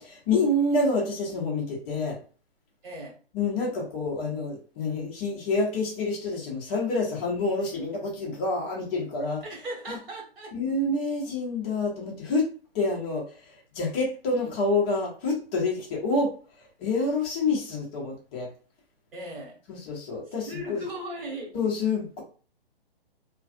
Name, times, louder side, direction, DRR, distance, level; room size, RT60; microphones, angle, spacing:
voice 1, 0.0-2.2 3.3-9.4 9.9-10.0 10.5-18.5 19.7-20.8 21.5-22.2, left 3 dB, 10° left, -2 dB, 0.4 m, -28 dB
voice 2, 2.8-3.2 9.4-10.5 19.1-19.6 20.5-21.7, right 1 dB, 65° right, -1 dB, 1.4 m, -37 dB
2.5 x 2.4 x 2.4 m, 0.38 s
figure-of-eight pair, 135°, 31 cm